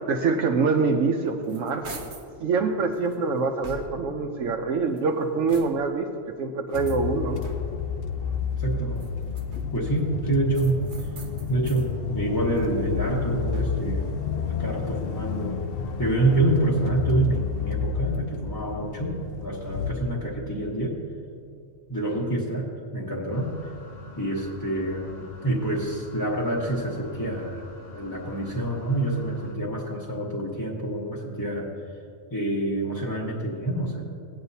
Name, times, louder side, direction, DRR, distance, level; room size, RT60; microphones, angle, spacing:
voice 1, 0.0-1.9 2.4-6.1 6.4-7.4, right 4 dB, 90° right, 1 dB, 1.1 m, -25 dB
sound 1, 1.0-2.4 2.9-4.2 4.8-6.0 6.7-7.9 8.8-9.9 10.5-11.9 12.3-14.0, right 3 dB, 65° right, 1.3 m, -45 dB
sound 2, 6.7-19.9, left 6 dB, 60° left, 0.7 m, -30 dB
voice 2, 8.6-9.0 9.7-10.8 11.5-14.2 14.5-15.6 16.0-21.0 21.9-22.7 22.9-23.5 24.2-31.8 32.3-34.0, right 2 dB, 20° left, -5 dB, 1.0 m, -27 dB
sound 3, 23.3-29.6, left 3 dB, 80° left, 1.5 m, -46 dB
17.5 x 8.7 x 2.7 m, 2.5 s
omnidirectional pair, 1.3 m